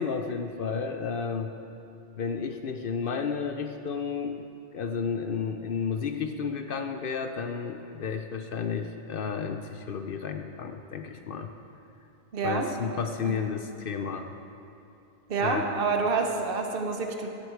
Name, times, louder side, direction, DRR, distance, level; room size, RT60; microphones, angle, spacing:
voice 1, 0.0-1.5 2.2-4.4 4.7-11.5 12.4-14.3 15.4-15.7, left 6 dB, 65° left, 6 dB, 0.8 m, -32 dB
voice 2, 12.3-12.7 13.2-13.4 15.3-17.3, right 4 dB, 65° right, 4 dB, 1.1 m, -28 dB
16.5 x 8.4 x 4.6 m, 2.7 s
omnidirectional pair, 1.0 m